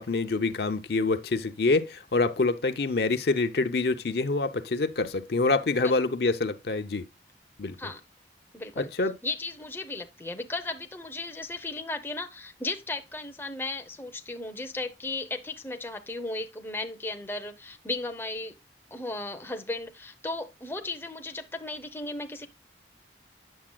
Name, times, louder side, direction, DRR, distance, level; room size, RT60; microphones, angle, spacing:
voice 1, 0.0-7.1 7.6-7.8 8.8-9.1, left 3 dB, 60° left, 0.6 m, -26 dB
voice 2, 8.5-8.9 9.2-18.6 18.9-22.5, left 2 dB, 10° left, 0.6 m, -35 dB
8.7 x 6.7 x 2.2 m
head